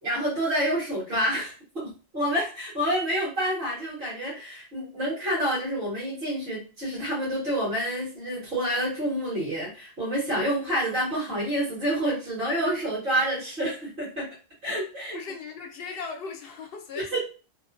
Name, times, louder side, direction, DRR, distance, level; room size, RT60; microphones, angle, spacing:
voice 1, 0.0-14.3 14.6-15.2 16.9-17.2, equal, 65° right, 1.5 m, -28 dB
voice 2, 15.1-17.2, left 5 dB, 65° left, 0.8 m, -38 dB
3.0 x 2.1 x 2.5 m
omnidirectional pair, 1.1 m